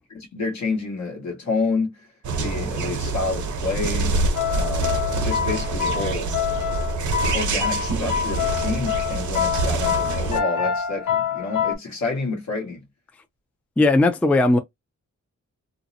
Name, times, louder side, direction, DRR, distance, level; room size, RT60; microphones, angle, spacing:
voice 1, 0.1-2.1 2.4-6.3 7.3-12.8, left 3 dB, 65° left, 1.1 m, -29 dB
sound 1, 2.2-10.4, right 3 dB, 75° right, 0.8 m, -26 dB
sound 2, 4.4-11.8, left 9 dB, 85° left, 0.6 m, -26 dB
voice 2, 13.8-14.6, left 2 dB, 5° left, 0.3 m, -17 dB
2.5 x 2.0 x 2.6 m
wide cardioid pair, 110°, 30 cm